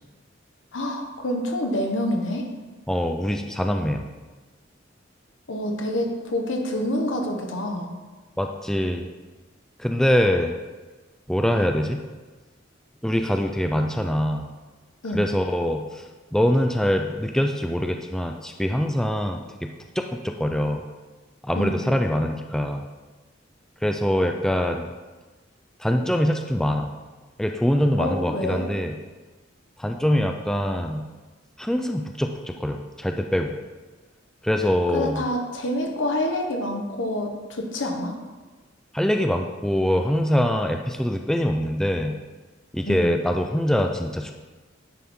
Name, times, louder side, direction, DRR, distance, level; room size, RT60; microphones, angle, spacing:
voice 1, 0.7-2.5 5.5-7.9 15.0-15.2 21.6-21.8 28.0-28.6 34.9-38.2 42.9-43.0, left 1 dB, 75° left, 2 dB, 1.0 m, -27 dB
voice 2, 2.9-4.1 8.4-9.1 9.8-10.6 11.3-12.0 13.0-14.5 15.1-16.0 16.3-19.7 20.0-20.8 21.4-22.8 23.8-24.9 25.8-26.9 27.4-29.0 29.8-31.0 31.6-33.6 34.4-35.2 38.9-42.2 42.7-44.3, equal, 5° left, 4 dB, 0.3 m, -24 dB
10.0 x 3.6 x 4.3 m, 1.3 s
head